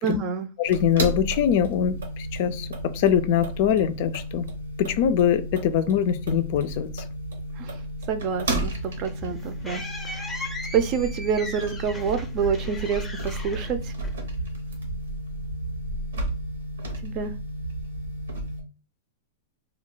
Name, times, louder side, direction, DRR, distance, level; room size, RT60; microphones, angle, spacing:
voice 1, 0.0-0.5 7.6-7.8 8.1-10.5 10.7-13.9 17.0-17.3, right 7 dB, 45° right, 0.5 m, -28 dB
voice 2, 0.6-2.7 2.9-4.5 4.8-7.0, left 9 dB, 55° left, 0.4 m, -23 dB
sound 1, 0.6-18.6, right 1 dB, 90° right, 1.0 m, -33 dB
sound 2, 8.7-14.5, left 2 dB, 10° left, 0.6 m, -39 dB
2.3 x 2.3 x 3.8 m
hypercardioid pair, 125°, 0 cm